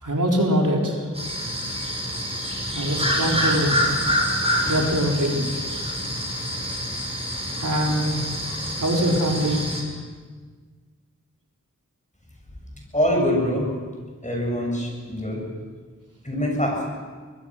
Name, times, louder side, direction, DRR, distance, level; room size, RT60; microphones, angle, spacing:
voice 1, 0.0-1.1 2.7-3.8 4.7-5.6 7.6-8.2 8.8-9.7, equal, 80° right, -1 dB, 3.9 m, -23 dB
sound 1, 1.1-9.8, equal, 20° right, 5.9 m, -26 dB
voice 2, 12.9-13.7 14.2-15.5 16.2-16.9, equal, 25° left, 0 dB, 7.4 m, -24 dB
24.5 x 21.5 x 6.4 m, 1.5 s
wide cardioid pair, 50°, 31 cm